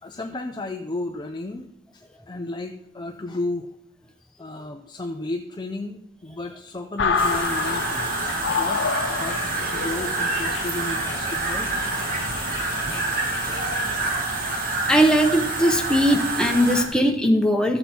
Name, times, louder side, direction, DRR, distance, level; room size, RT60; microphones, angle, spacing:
voice 1, 0.0-1.7 1.9-3.7 4.4-9.4 9.7-12.6 12.9-13.0, left 2 dB, 25° left, 4 dB, 0.5 m, -33 dB
sound 1, 7.0-14.0, left 5 dB, 65° left, 0.7 m, -29 dB
sound 2, 7.2-16.8, right 3 dB, 45° right, 1.7 m, -27 dB
voice 2, 14.9-17.8, equal, 5° left, 2 dB, 1.0 m, -19 dB
14.0 x 7.3 x 4.4 m, 0.83 s
head